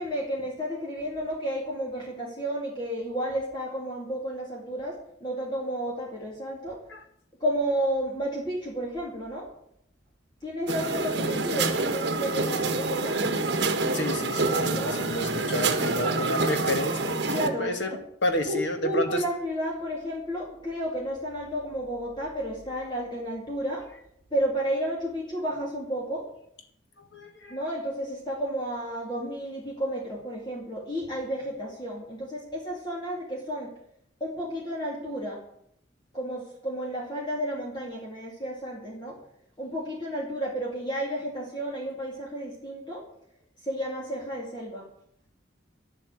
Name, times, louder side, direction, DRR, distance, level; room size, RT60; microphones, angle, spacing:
voice 1, 0.0-6.8 7.4-9.5 10.4-13.2 14.7-15.0 16.0-16.2 17.3-18.0 18.5-23.9 24.3-26.3 27.5-33.7 34.2-35.4 36.1-39.2 39.6-43.0 43.6-44.9, equal, 25° left, -3 dB, 2.4 m, -32 dB
sound 1, 10.7-17.5, right 3 dB, 60° right, 1.2 m, -27 dB
voice 2, 13.9-17.2 17.6-19.2 27.0-27.6, left 1 dB, 70° left, 6 dB, 1.8 m, -30 dB
10.5 x 7.5 x 8.9 m, 0.73 s
head